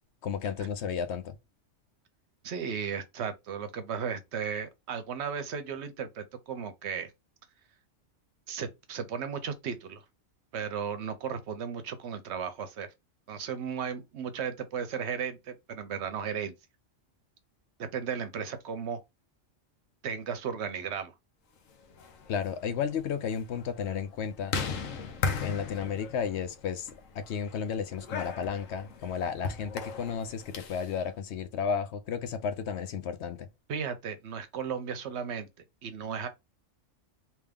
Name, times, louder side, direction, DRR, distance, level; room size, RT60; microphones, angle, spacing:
voice 1, 0.2-1.4 22.3-24.6 25.4-33.5, left 7 dB, 65° left, 0.8 m, -33 dB
voice 2, 2.4-7.1 8.5-10.0 10.5-12.9 13.3-16.5 17.8-19.0 20.0-21.1 33.7-35.5 35.8-36.3, right 7 dB, 65° right, 0.8 m, -35 dB
sound 1, 21.8-30.9, left 5 dB, 85° left, 1.1 m, -38 dB
3.4 x 2.9 x 3.4 m
omnidirectional pair, 1.3 m